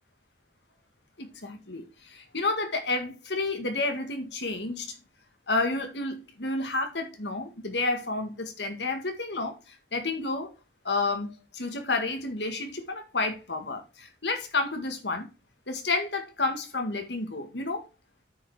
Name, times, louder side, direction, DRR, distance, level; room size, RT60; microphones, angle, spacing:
voice 1, 1.2-5.0 5.5-10.5 10.8-15.3 15.7-17.9, left 3 dB, 80° left, 1.8 m, -30 dB
8.9 x 5.2 x 4.9 m
head